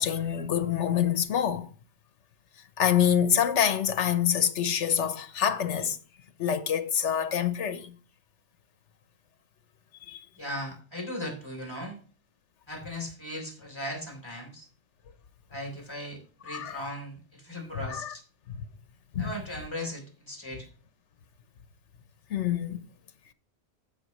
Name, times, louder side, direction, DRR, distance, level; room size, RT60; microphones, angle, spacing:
voice 1, 0.0-1.7 2.8-6.0 6.4-7.9 10.1-10.2 16.5-16.8 17.9-18.1 18.5-18.6 19.1-19.3 22.3-22.8, left 9 dB, 85° left, 1.2 m, -26 dB
voice 2, 10.4-12.0 12.7-14.7 15.5-18.2 19.2-20.7, left 1 dB, 25° left, 3.5 m, -38 dB
15.5 x 5.8 x 3.1 m
omnidirectional pair, 1.2 m